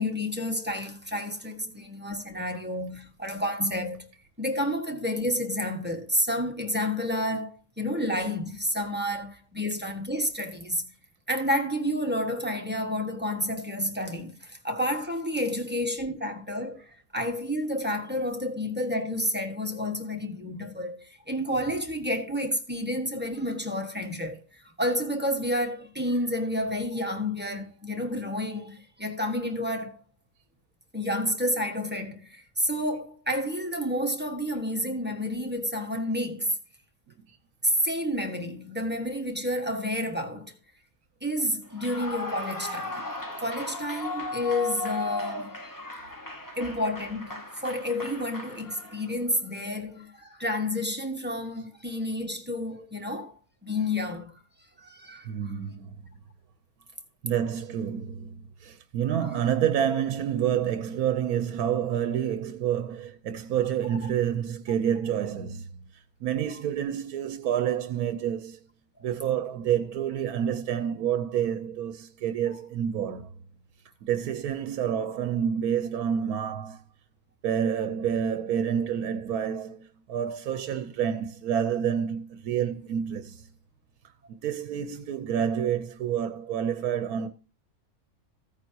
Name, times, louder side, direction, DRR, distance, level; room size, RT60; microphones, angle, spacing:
voice 1, 0.0-4.1 4.4-10.8 11.3-16.8 17.1-24.4 24.8-30.0 30.9-36.6 37.6-40.5 41.2-43.0 43.4-45.6 46.6-53.3 53.6-54.3 54.8-55.5, left 1 dB, 5° right, 1.3 m, -30 dB
Clapping / Cheering / Applause, 41.7-49.1, left 2 dB, 15° left, 1.2 m, -36 dB
voice 2, 55.2-56.0 57.2-68.6 69.0-73.3 74.0-76.8 77.4-83.5 84.3-87.3, right 9 dB, 85° right, 1.2 m, -28 dB
15.5 x 9.0 x 2.8 m
omnidirectional pair, 1.5 m